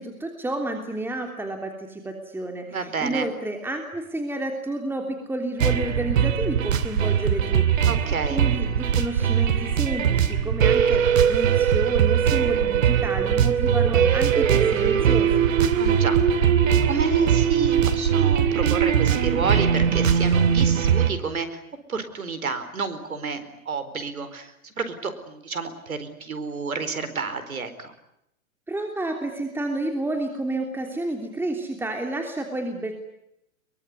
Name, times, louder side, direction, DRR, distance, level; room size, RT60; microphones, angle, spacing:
voice 1, 0.0-7.9 8.3-15.5 28.7-32.9, right 1 dB, 5° right, 3 dB, 3.1 m, -30 dB
voice 2, 2.7-3.3 7.9-8.4 15.8-16.2 16.8-21.6 21.9-27.9, right 4 dB, 85° right, 11 dB, 4.5 m, -30 dB
sound 1, 5.6-21.1, right 8 dB, 70° right, 2.8 m, -20 dB
25.0 x 23.0 x 9.6 m, 0.79 s
hypercardioid pair, 115°, 41 cm